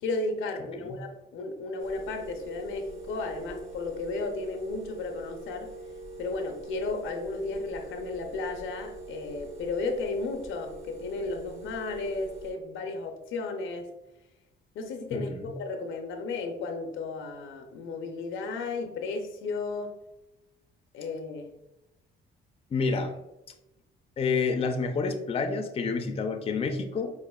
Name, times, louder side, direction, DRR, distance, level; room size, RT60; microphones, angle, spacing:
voice 1, 0.0-5.7 6.2-13.9 14.7-19.9 20.9-21.5, left 3 dB, 85° left, 5 dB, 0.5 m, -34 dB
sound 1, 1.8-12.5, right 2 dB, 35° right, 0.9 m, -43 dB
voice 2, 15.1-15.5 22.7-23.1 24.2-27.1, left 4 dB, 30° left, 6 dB, 0.4 m, -28 dB
4.9 x 2.4 x 2.3 m, 0.92 s
cardioid pair, 90°, 20 cm